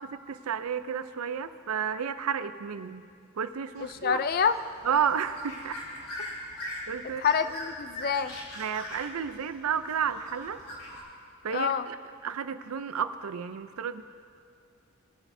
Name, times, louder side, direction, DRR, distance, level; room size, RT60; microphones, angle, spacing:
voice 1, 0.3-3.0 3.4-4.2 4.8-5.8 6.9-7.2 8.6-10.6 11.4-12.0 12.2-14.0, right 7 dB, 80° right, 12 dB, 0.5 m, -31 dB
sound 1, 3.7-11.0, left 1 dB, 90° left, 2.4 m, -42 dB
voice 2, 3.8-4.6 7.2-8.4 11.5-11.9, left 6 dB, 45° left, 12 dB, 0.3 m, -27 dB
19.5 x 9.0 x 2.7 m, 2.4 s
head